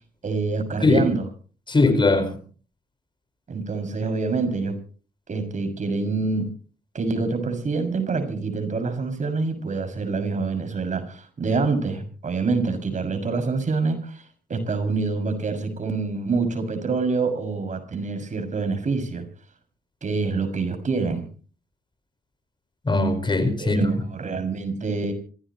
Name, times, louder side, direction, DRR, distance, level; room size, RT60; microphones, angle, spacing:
voice 1, 0.2-1.2 3.5-4.8 5.3-6.5 6.9-14.2 14.5-19.3 20.0-21.2 23.6-25.1, right 4 dB, 50° right, 6.4 m, -26 dB
voice 2, 1.7-2.4 22.8-23.9, left 2 dB, 30° left, 5.0 m, -20 dB
26.5 x 17.0 x 3.1 m
cardioid pair, 85°, 16 cm